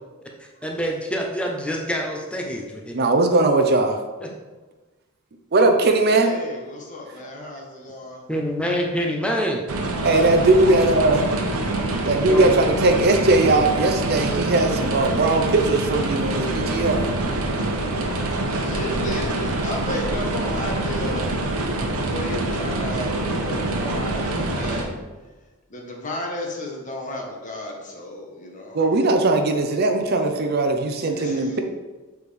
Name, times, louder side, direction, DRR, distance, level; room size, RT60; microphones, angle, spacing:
voice 1, 0.4-2.9 4.2-4.3 8.3-9.7 12.1-12.5, equal, 5° left, 0 dB, 0.7 m, -26 dB
voice 2, 2.9-4.0 5.5-6.3 10.0-11.2 12.1-17.1 28.7-31.6, right 2 dB, 50° right, 5 dB, 0.6 m, -19 dB
voice 3, 6.1-8.2 10.0-10.9 18.4-24.9 25.7-28.8 31.2-31.6, left 1 dB, 35° left, 0 dB, 1.1 m, -34 dB
sound 1, 9.7-24.8, right 2 dB, 85° right, 0.9 m, -25 dB
7.3 x 4.6 x 3.3 m, 1.2 s
head